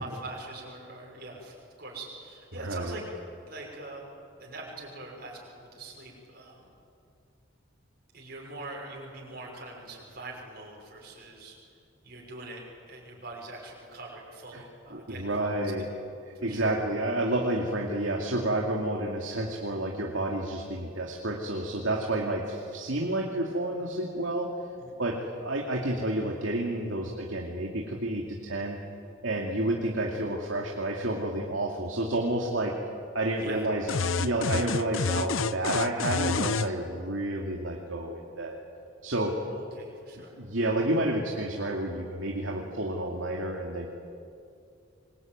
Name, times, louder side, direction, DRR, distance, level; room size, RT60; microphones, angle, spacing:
voice 1, 0.0-3.0 3.5-4.1 4.4-6.7 8.1-11.6 12.0-15.9 16.3-16.7 24.8-25.0 33.4-34.1 39.5-40.4, right 2 dB, 50° right, -2 dB, 6.3 m, -43 dB
voice 2, 2.6-3.0 14.5-14.6 14.9-15.9 16.3-24.5 25.0-28.8 29.2-32.7 33.1-33.9 34.2-38.5 39.0-39.4 40.4-43.9, right 1 dB, 75° right, -1 dB, 2.6 m, -30 dB
sound 1, 33.9-36.7, left 4 dB, 80° left, 0.7 m, -28 dB
27.0 x 22.5 x 9.4 m, 2.5 s
head